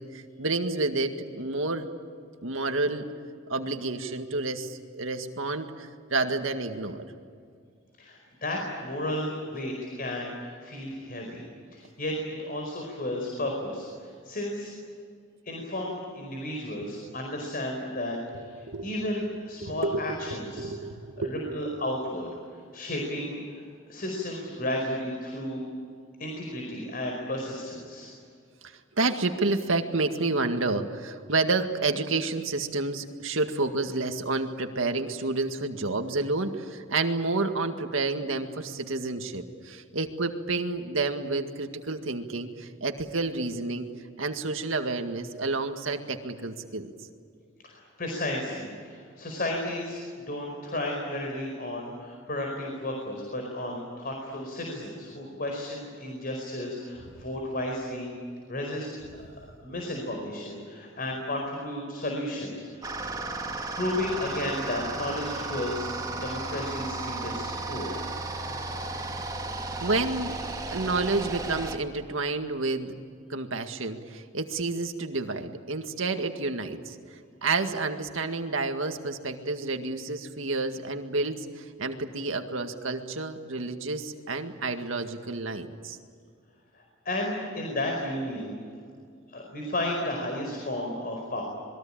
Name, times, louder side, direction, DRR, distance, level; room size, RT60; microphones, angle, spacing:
voice 1, 0.0-1.9 2.4-3.1 3.5-7.0 18.7-18.9 19.6-20.2 20.6-21.5 28.6-43.9 44.2-46.9 69.8-70.4 70.7-72.9 73.3-77.0 77.4-86.0, right 3 dB, 80° right, 6 dB, 2.0 m, -30 dB
voice 2, 8.0-11.4 11.7-14.7 15.4-20.9 21.2-22.3 22.7-23.6 23.9-25.6 26.2-28.1 47.6-58.1 58.5-58.9 59.1-62.9 63.7-68.0 86.7-88.6 89.3-91.4, left 1 dB, 50° left, 1 dB, 4.9 m, -33 dB
sound 1, 62.8-71.8, right 3 dB, 20° right, 2.5 m, -34 dB
27.0 x 21.5 x 8.9 m, 2.2 s
head